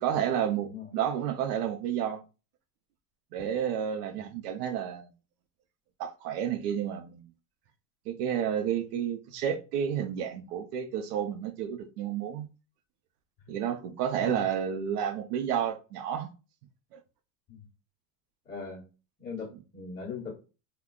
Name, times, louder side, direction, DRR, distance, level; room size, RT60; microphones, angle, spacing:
voice 1, 0.0-2.2 3.3-5.1 6.0-7.2 8.1-12.5 13.5-16.3 16.9-17.0, right 9 dB, 75° right, 0.6 m, -31 dB
voice 2, 0.6-1.0 4.1-4.3 14.2-14.4 17.5-17.6 18.4-18.8 19.2-20.3, left 5 dB, 15° left, 1.0 m, -40 dB
3.6 x 2.2 x 2.3 m
supercardioid pair, 140°, 47 cm